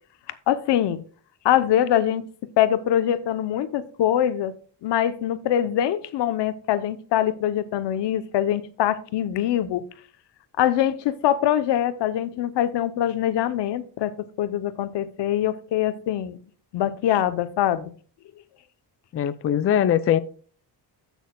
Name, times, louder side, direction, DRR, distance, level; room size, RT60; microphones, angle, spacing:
voice 1, 0.3-1.0 1.4-2.3 2.6-4.5 4.8-9.8 10.6-16.4 16.7-17.9, left 11 dB, 80° left, 0.8 m, -23 dB
voice 2, 19.1-20.2, left 10 dB, 35° left, 0.4 m, -21 dB
16.0 x 6.3 x 2.3 m
cardioid pair, 130°, 42 cm